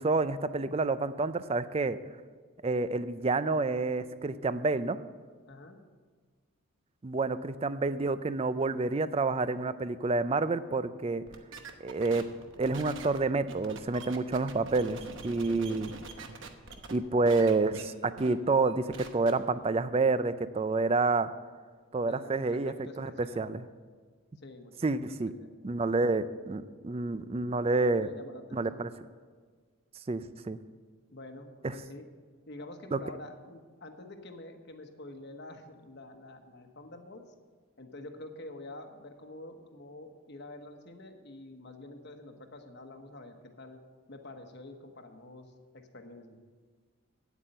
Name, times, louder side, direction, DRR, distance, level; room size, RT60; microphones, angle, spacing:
voice 1, 0.0-2.0 2.6-5.0 7.0-11.2 11.8-12.2 12.6-15.9 16.9-21.3 21.9-23.6 24.8-25.3 25.6-28.1 28.5-28.9 30.1-30.6 32.9-33.0, right 3 dB, 25° right, 13 dB, 0.4 m, -29 dB
voice 2, 5.5-5.8 22.1-23.5 24.4-25.5 27.9-28.9 31.1-32.0 32.5-37.3 37.8-43.8 44.1-46.4, left 2 dB, 50° left, 5 dB, 1.1 m, -47 dB
sound 1, 11.3-17.0 17.2-17.8 18.2-18.3 18.6-19.3, right 3 dB, 55° right, 1.0 m, -44 dB
9.2 x 8.3 x 7.8 m, 1.6 s
head